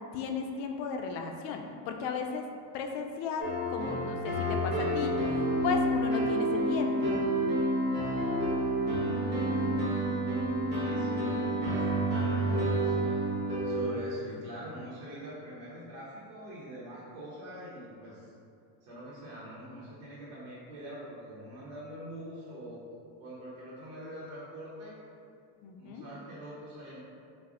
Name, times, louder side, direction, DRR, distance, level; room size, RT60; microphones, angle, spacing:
voice 1, 0.1-2.4 2.7-5.2 5.6-7.2 25.6-26.0, left 5 dB, 65° left, 3 dB, 0.5 m, -35 dB
sound 1, 3.4-13.8, right 1 dB, 20° right, 1.1 m, -29 dB
voice 2, 10.8-13.1 13.6-18.3 18.8-22.8 23.2-25.0 25.8-27.0, equal, 70° right, -8 dB, 1.0 m, -44 dB
3.3 x 2.0 x 3.5 m, 2.4 s
supercardioid pair, 110°, 48 cm